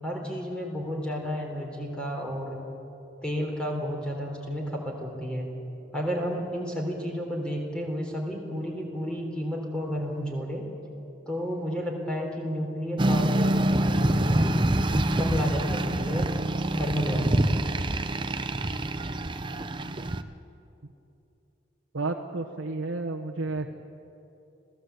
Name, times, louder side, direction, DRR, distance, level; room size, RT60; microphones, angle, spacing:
voice 1, 0.0-2.6 3.2-5.5 5.9-10.7 11.3-14.6 15.2-16.3 16.7-17.6, equal, 5° left, 0 dB, 3.7 m, -31 dB
sound 1, 13.0-20.2, right 1 dB, 25° right, 0.7 m, -26 dB
voice 2, 21.9-23.7, right 3 dB, 90° right, 2 dB, 1.1 m, -31 dB
26.0 x 17.0 x 8.2 m, 2.9 s
head